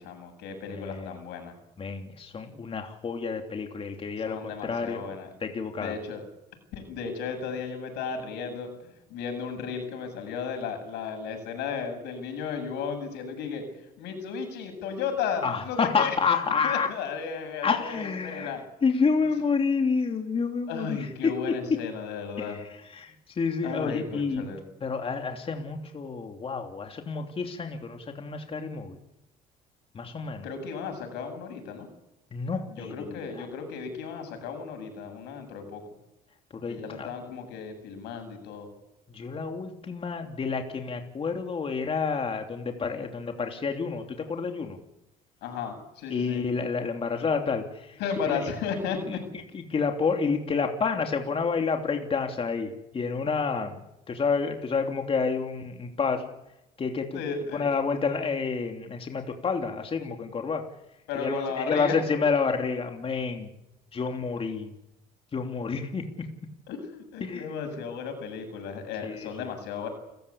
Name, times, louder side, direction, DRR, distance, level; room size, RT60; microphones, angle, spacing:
voice 1, 0.0-1.5 4.2-5.3 5.8-6.2 6.7-8.7 9.1-13.6 14.0-16.2 16.6-18.6 20.7-22.6 23.6-24.6 30.4-31.9 32.7-35.8 36.7-38.7 45.4-46.4 48.0-49.2 57.1-57.6 61.1-62.0 66.7-69.9, left 6 dB, 90° left, 6 dB, 7.9 m, -34 dB
voice 2, 0.7-1.1 1.8-5.1 5.4-6.0 15.4-16.9 17.6-21.3 22.4-22.6 22.9-29.0 29.9-30.4 32.3-33.5 36.6-37.1 39.1-44.8 46.1-48.0 48.3-48.4 49.1-49.2 49.5-53.8 54.1-56.3 56.8-57.2 57.5-60.6 61.1-63.5 63.9-64.7 65.3-66.3 67.2-67.5 69.0-69.3, left 5 dB, 35° left, 4 dB, 3.0 m, -29 dB
30.0 x 15.5 x 8.6 m, 0.86 s
cardioid pair, 110°, 17 cm